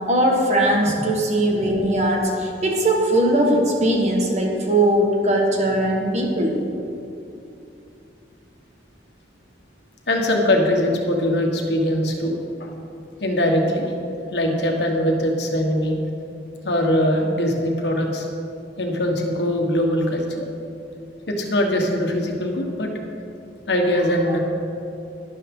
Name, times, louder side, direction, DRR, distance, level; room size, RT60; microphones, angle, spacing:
voice 1, 0.1-6.6, right 1 dB, 40° right, 0 dB, 1.5 m, -20 dB
voice 2, 10.1-12.3 12.6-12.7 13.2-13.9 14.3-16.0 16.6-18.3 18.8-20.5 21.3-22.9 23.7-24.4, left 1 dB, 75° left, 1 dB, 1.5 m, -21 dB
12.0 x 11.5 x 3.8 m, 2.7 s
head